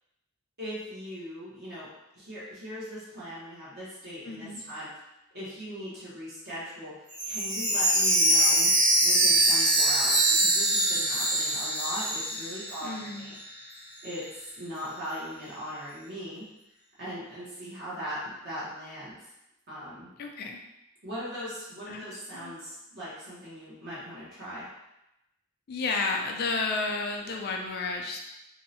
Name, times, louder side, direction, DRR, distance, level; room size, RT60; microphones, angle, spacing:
voice 1, 0.6-1.9 2.1-4.9 5.3-8.7 9.0-13.4 14.0-16.4 17.0-19.3 19.7-20.1 21.0-24.6, equal, 50° right, -9 dB, 0.8 m, -39 dB
voice 2, 4.2-4.6 12.8-13.3 20.2-20.6 21.9-22.6 25.7-28.2, left 3 dB, 45° left, 2 dB, 0.4 m, -32 dB
Chime, 7.1-13.1 13.4-13.5 14.0-14.1, right 1 dB, 85° right, 1.1 m, -23 dB
2.6 x 2.0 x 2.7 m, 0.90 s
head